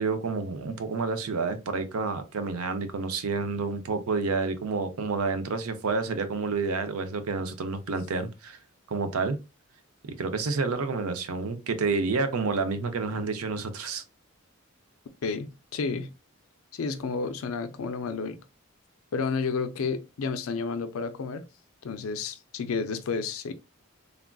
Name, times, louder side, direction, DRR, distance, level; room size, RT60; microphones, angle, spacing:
voice 1, 0.0-8.6 8.9-9.4 10.0-14.0, right 4 dB, 90° right, 0.5 m, -29 dB
voice 2, 15.2-16.1 16.7-18.4 19.1-21.4 21.8-23.5, left 4 dB, 70° left, 0.4 m, -31 dB
3.3 x 2.4 x 2.2 m
head